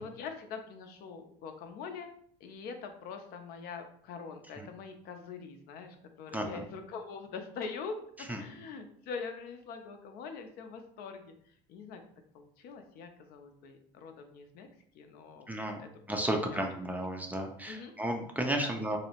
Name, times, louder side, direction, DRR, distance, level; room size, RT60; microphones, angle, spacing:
voice 1, 0.0-2.1 2.4-12.0 12.3-14.7 14.9-15.5 15.8-16.7 17.6-17.9 18.5-18.7, left 5 dB, 65° left, 6 dB, 0.5 m, -44 dB
voice 2, 15.5-15.8 16.1-19.0, right 1 dB, 10° right, 3 dB, 0.4 m, -33 dB
2.7 x 2.0 x 2.8 m, 0.64 s
supercardioid pair, 90°, 17 cm